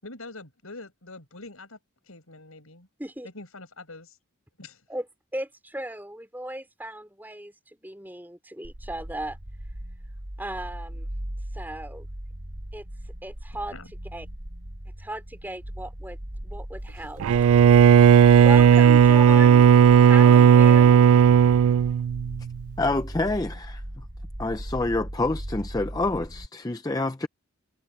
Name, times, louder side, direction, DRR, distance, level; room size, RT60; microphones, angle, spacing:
voice 1, 0.0-1.8 2.1-2.9 3.2-4.2 4.6-4.8 13.7-13.9, left 2 dB, 80° left, 5.7 m, -44 dB
voice 2, 5.3-9.4 10.4-11.1 11.5-12.1 12.7-12.9 13.2-13.8 14.1-14.3 15.0-16.2 16.4-17.2 18.4-19.7 20.0-21.0, right 1 dB, 10° right, 4.3 m, -36 dB
sound 1, 8.6-26.5, right 1 dB, 45° right, 2.1 m, -38 dB
Bowed string instrument, 17.2-22.5, right 8 dB, 80° right, 0.3 m, -15 dB
voice 3, 22.8-23.8 24.4-27.3, left 2 dB, 15° left, 0.5 m, -27 dB
head